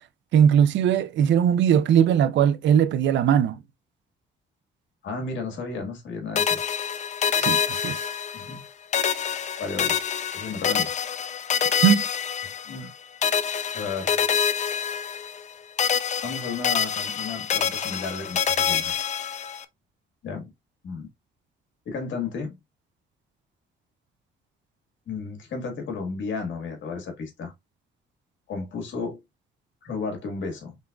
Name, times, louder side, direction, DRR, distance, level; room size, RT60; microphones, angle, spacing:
voice 1, 0.3-3.6 7.4-8.0 11.8-12.0, right 9 dB, 70° right, 0.5 m, -19 dB
voice 2, 5.0-6.6 8.3-8.6 9.6-10.0 10.3-10.9 12.7-12.9 13.7-14.3 16.2-18.9 20.2-20.5 20.8-21.1 21.8-22.6 25.1-27.5 28.5-29.2 29.8-30.8, left 4 dB, 70° left, 1.6 m, -33 dB
sound 1, 6.4-8.7 8.9-12.9 13.2-15.5 15.8-19.6, left 7 dB, 35° left, 0.4 m, -26 dB
3.9 x 3.5 x 2.3 m
cardioid pair, 90°, 20 cm